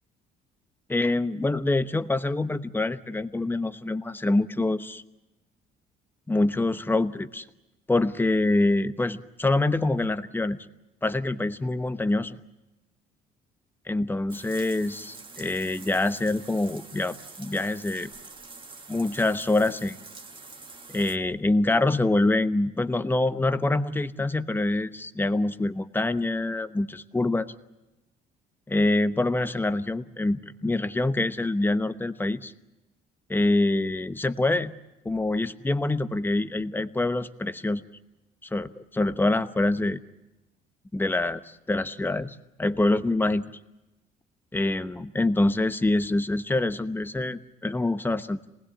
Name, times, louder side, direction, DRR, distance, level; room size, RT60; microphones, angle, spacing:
voice 1, 0.9-5.0 6.3-7.4 7.9-10.6 11.0-12.4 13.9-18.1 18.9-20.0 20.9-27.5 28.7-32.5 33.3-34.7 35.0-37.8 38.5-40.0 40.9-41.4 41.7-43.4 44.5-48.4, left 2 dB, 10° left, 11 dB, 1.0 m, -25 dB
sound 1, 14.3-21.2, right 4 dB, 30° right, 2.1 m, -45 dB
27.0 x 19.5 x 8.4 m, 0.99 s
cardioid pair, 110°, 17 cm